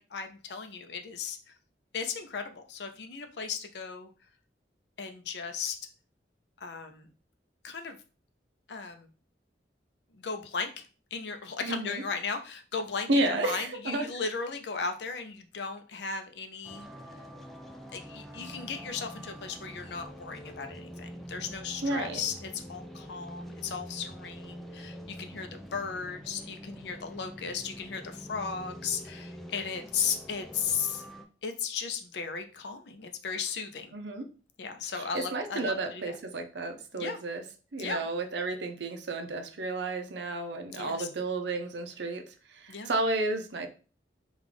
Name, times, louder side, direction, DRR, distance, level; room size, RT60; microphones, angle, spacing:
voice 1, 0.0-1.4 1.9-4.1 5.0-5.8 6.6-7.1 7.6-8.0 8.7-9.1 10.2-10.8 11.1-16.9 17.9-31.1 31.4-33.9 34.6-36.2 36.9-37.2 37.8-38.1 40.7-41.1 42.7-42.9, left 5 dB, 75° left, 7 dB, 0.5 m, -36 dB
voice 2, 11.6-12.0 13.1-14.1 21.8-22.2 33.9-34.2 34.9-37.4 37.7-42.2 42.5-43.7, right 2 dB, 80° right, 6 dB, 0.6 m, -32 dB
sound 1, 16.6-31.2, equal, ahead, 0.4 m, -45 dB
3.6 x 2.4 x 3.3 m, 0.36 s
head